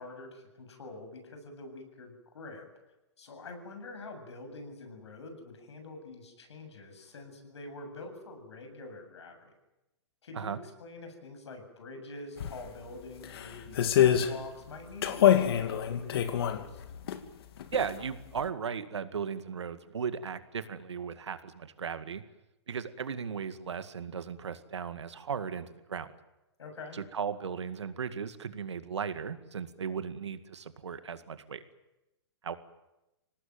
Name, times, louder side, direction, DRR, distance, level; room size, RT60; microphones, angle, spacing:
voice 1, 0.0-2.7 3.2-9.5 10.2-16.8 26.6-27.0, left 2 dB, 80° left, 5 dB, 7.7 m, -46 dB
sound 1, 12.4-12.5 13.2-14.3 15.0-17.2 17.6-18.1 18.4-18.5, left 10 dB, 60° left, 2.4 m, -26 dB
voice 2, 17.7-22.2 22.7-26.1 26.9-31.6 32.4-32.6, right 6 dB, 85° right, 10 dB, 2.1 m, -36 dB
26.0 x 19.0 x 9.3 m, 0.97 s
hypercardioid pair, 140°, 14 cm